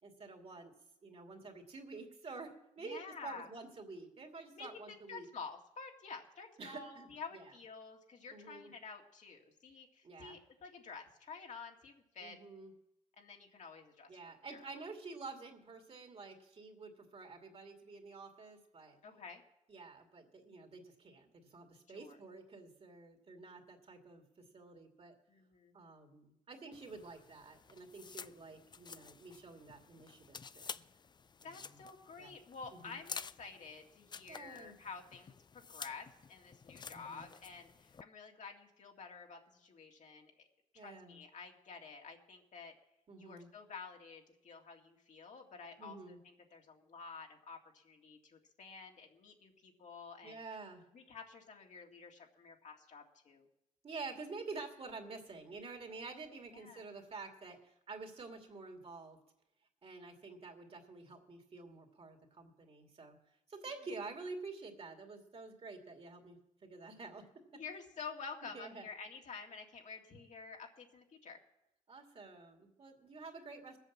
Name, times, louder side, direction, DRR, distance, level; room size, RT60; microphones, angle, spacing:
voice 1, 0.0-0.7 1.0-5.3 6.6-7.5 8.3-8.7 10.0-10.4 12.2-12.7 14.1-19.0 19.7-25.1 25.7-30.8 31.4-31.8 32.2-32.3 32.7-33.0 34.3-34.7 36.9-37.3 40.7-41.2 43.1-43.5 45.8-46.2 50.2-50.8 53.8-59.2 59.8-63.2 63.5-67.2 67.5-67.6 68.4-68.9 71.9-73.8, right 3 dB, 45° right, 4 dB, 2.5 m, -49 dB
voice 2, 2.8-3.5 4.6-12.4 13.2-14.1 14.4-14.7 19.0-19.4 21.9-22.2 25.3-25.7 31.4-40.5 40.7-42.7 43.2-50.4 50.9-53.5 56.5-56.9 67.5-71.4, left 5 dB, 65° left, 1 dB, 2.1 m, -50 dB
sound 1, 26.7-38.0, left 5 dB, 35° left, 0.4 m, -51 dB
19.5 x 8.1 x 7.3 m, 0.86 s
cardioid pair, 90°, 13 cm